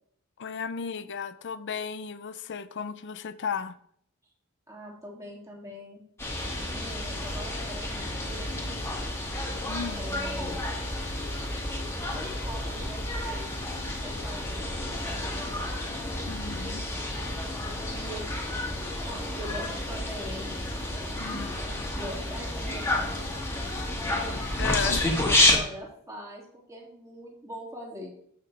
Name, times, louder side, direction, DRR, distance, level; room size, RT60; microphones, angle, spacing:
voice 1, 0.4-3.8 9.7-10.1 16.3-16.9 21.2-21.6 24.6-25.0, left 6 dB, 55° left, 0.5 m, -34 dB
voice 2, 4.7-6.0 6.6-8.5 9.9-10.6 12.0-13.5 14.0-15.4 17.8-18.4 18.7-20.7 21.6-24.4 24.8-26.4 26.7-28.1, equal, 15° right, 2.6 m, -42 dB
sound 1, 6.2-25.6, left 1 dB, 10° left, 1.8 m, -30 dB
14.0 x 5.8 x 3.4 m
head